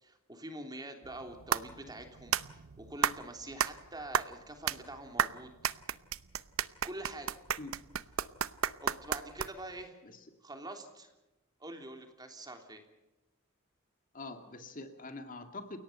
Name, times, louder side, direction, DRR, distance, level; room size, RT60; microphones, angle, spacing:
voice 1, 0.0-5.5 6.8-7.4 8.8-10.0 10.4-11.1 11.6-12.8, right 1 dB, 20° right, 5 dB, 3.3 m, -45 dB
sound 1, 1.0-9.8, right 8 dB, 75° right, 0.8 m, -34 dB
voice 2, 14.1-15.8, left 2 dB, 40° left, 7 dB, 2.3 m, -44 dB
30.0 x 18.0 x 5.7 m, 0.99 s
head